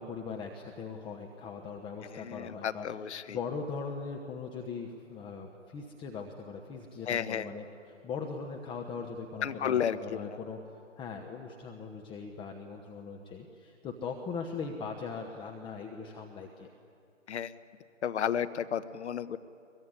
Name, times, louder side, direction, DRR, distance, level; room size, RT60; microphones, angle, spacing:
voice 1, 0.0-10.6 11.0-16.7, left 5 dB, 15° left, 3 dB, 1.1 m, -40 dB
voice 2, 2.1-3.4 7.1-7.5 9.4-10.4 17.3-17.5 18.0-19.4, left 8 dB, 60° left, 12 dB, 1.2 m, -32 dB
22.5 x 22.5 x 10.0 m, 2.5 s
figure-of-eight pair, 135°, 38 cm